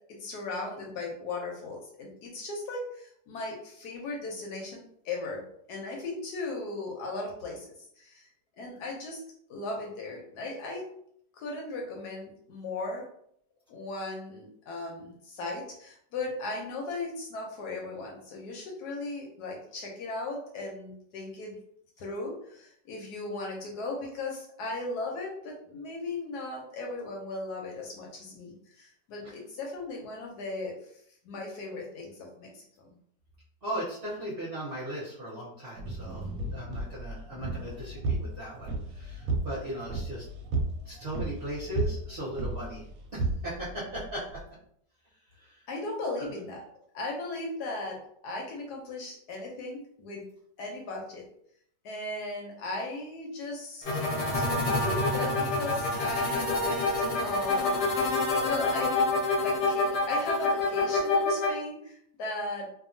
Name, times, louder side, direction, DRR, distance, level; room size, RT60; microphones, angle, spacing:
voice 1, 0.1-5.4 5.7-7.7 8.0-8.3 8.6-9.2 9.5-10.8 11.4-13.1 13.7-21.6 22.0-30.8 31.2-32.7 45.7-46.6 46.9-50.3 50.6-51.3 51.8-59.0 59.4-62.7, left 2 dB, 70° left, 0 dB, 1.1 m, -37 dB
voice 2, 33.6-40.2 40.8-42.8 43.1-44.4 45.4-45.6 46.2-46.3, equal, 45° right, -9 dB, 0.8 m, -38 dB
sound 1, 35.8-44.4, right 2 dB, 70° right, 1.0 m, -34 dB
sound 2, 53.8-61.5, left 3 dB, 85° left, 0.5 m, -27 dB
2.8 x 2.3 x 2.6 m, 0.67 s
omnidirectional pair, 1.9 m